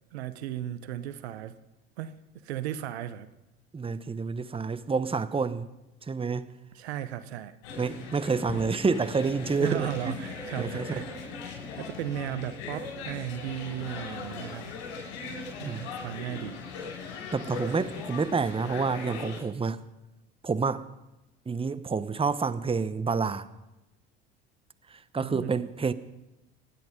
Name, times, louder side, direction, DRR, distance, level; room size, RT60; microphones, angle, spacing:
voice 1, 0.1-1.6 2.0-3.3 6.7-7.6 9.6-11.1 11.8-14.7 15.6-16.6 17.7-17.8 25.1-25.6, right 11 dB, 80° right, 1.0 m, -36 dB
voice 2, 3.7-5.7 6.1-6.5 7.8-10.1 10.6-10.9 15.7-15.9 17.3-19.8 20.4-20.9 21.5-23.5 24.9-25.9, right 5 dB, 15° right, 1.0 m, -28 dB
sound 1, 7.6-19.4, left 4 dB, 75° left, 6.6 m, -39 dB
26.0 x 10.5 x 5.2 m
hypercardioid pair, 70°, 32 cm